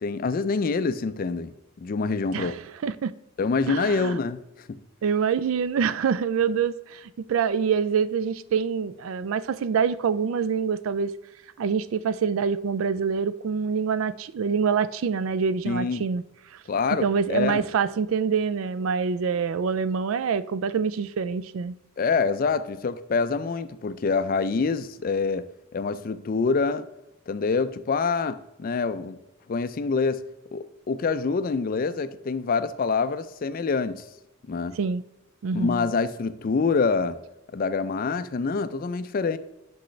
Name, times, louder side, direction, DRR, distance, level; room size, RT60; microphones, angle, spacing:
voice 1, 0.0-1.5 1.8-2.6 3.4-4.4 4.7-4.8 15.6-16.0 16.7-17.6 22.0-25.5 25.7-26.9 27.3-29.2 29.5-30.2 30.5-34.0 34.5-34.8 35.5-37.2 37.5-39.4, left 4 dB, 40° left, 0.4 m, -26 dB
voice 2, 3.7-4.2 5.0-11.1 11.6-16.2 17.0-21.7 34.8-35.0 35.4-35.8, right 6 dB, 70° right, 0.3 m, -25 dB
6.3 x 5.5 x 3.2 m
head